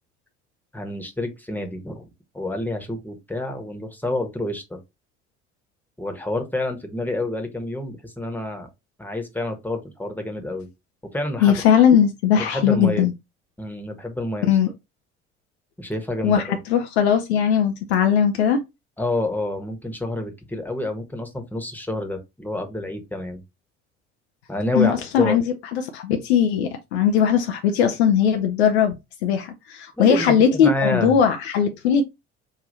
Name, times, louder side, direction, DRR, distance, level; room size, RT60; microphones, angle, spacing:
voice 1, 0.7-4.8 6.0-8.7 9.0-10.7 11.1-11.6 12.3-13.1 13.6-14.5 15.8-16.6 19.0-23.4 24.5-25.4 30.0-30.3 30.6-31.1, left 1 dB, 5° left, 1.2 m, -28 dB
voice 2, 11.4-13.1 14.5-14.7 16.2-18.6 24.7-32.0, left 8 dB, 70° left, 0.6 m, -19 dB
5.0 x 2.7 x 2.7 m
figure-of-eight pair, 55°, 34 cm